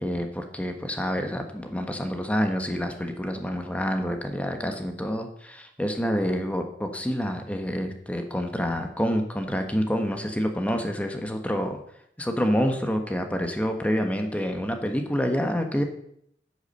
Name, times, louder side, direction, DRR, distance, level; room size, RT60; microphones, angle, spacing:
voice 1, 0.0-11.8 12.2-15.8, equal, 10° left, 5 dB, 1.3 m, -27 dB
9.7 x 8.6 x 6.7 m, 0.71 s
head